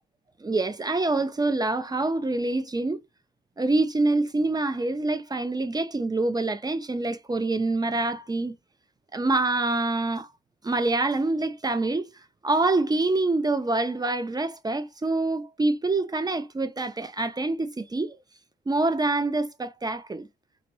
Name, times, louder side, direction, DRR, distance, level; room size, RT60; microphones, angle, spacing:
voice 1, 0.4-3.0 3.6-8.5 9.1-10.3 10.6-12.1 12.4-18.2 18.7-20.3, right 2 dB, 20° right, 0.5 m, -26 dB
2.9 x 2.7 x 2.9 m
hypercardioid pair, 45°, 21 cm